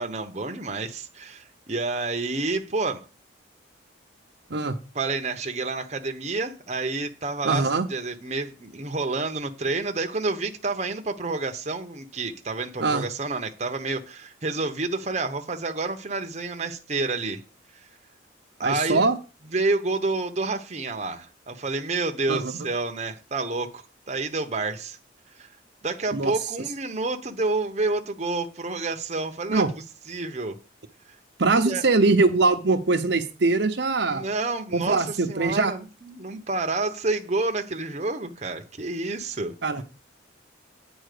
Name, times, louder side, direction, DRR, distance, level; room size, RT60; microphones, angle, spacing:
voice 1, 0.0-3.0 4.9-17.4 18.6-19.1 19.5-25.0 25.3-25.5 25.8-29.6 30.1-30.6 31.6-31.8 34.1-39.5, right 3 dB, 35° right, 0.9 m, -29 dB
voice 2, 7.4-7.9 12.8-13.0 18.6-19.2 22.3-22.7 26.1-26.3 29.5-29.7 31.4-34.2 34.7-35.7 39.6-39.8, right 3 dB, 60° right, 0.8 m, -22 dB
9.1 x 4.4 x 6.7 m
head